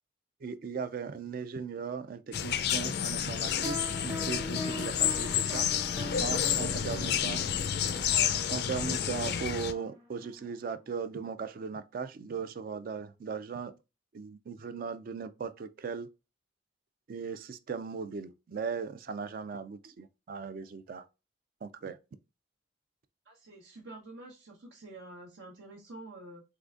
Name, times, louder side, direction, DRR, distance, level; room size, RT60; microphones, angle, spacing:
voice 1, 0.4-3.8 4.0-5.7 6.2-7.4 8.5-13.7 14.1-16.1 17.1-21.1 21.6-22.0, right 5 dB, 50° right, 0.3 m, -38 dB
sound 1, 2.3-9.7, left 9 dB, 55° left, 0.4 m, -30 dB
sound 2, 3.6-10.4, left 1 dB, 20° right, 0.7 m, -42 dB
voice 2, 23.2-26.4, right 2 dB, 80° right, 1.0 m, -48 dB
3.7 x 3.3 x 2.4 m
head